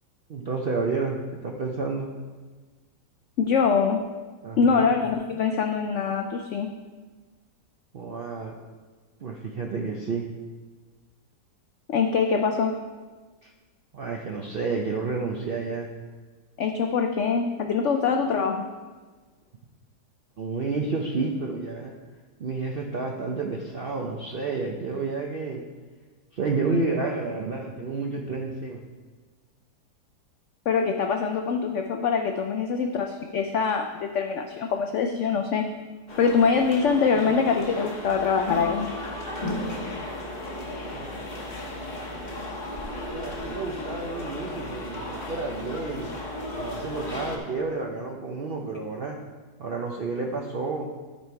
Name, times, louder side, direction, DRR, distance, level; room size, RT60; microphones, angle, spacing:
voice 1, 0.3-2.1 4.4-4.8 7.9-8.5 9.2-10.3 13.4-13.5 13.9-15.9 20.4-21.9 22.4-25.6 26.3-28.8 40.9-41.1 41.7-41.9 43.1-46.1 46.5-49.2 49.6-50.9, right 3 dB, 70° right, 0 dB, 0.5 m, -30 dB
voice 2, 3.4-4.0 4.6-6.7 11.9-12.8 16.6-18.6 30.7-35.7 36.2-38.9, left 5 dB, 85° left, 5 dB, 0.6 m, -24 dB
sound 1, 36.1-47.4, left 1 dB, 30° left, 1.1 m, -34 dB
12.5 x 4.3 x 4.5 m, 1.4 s
omnidirectional pair, 1.8 m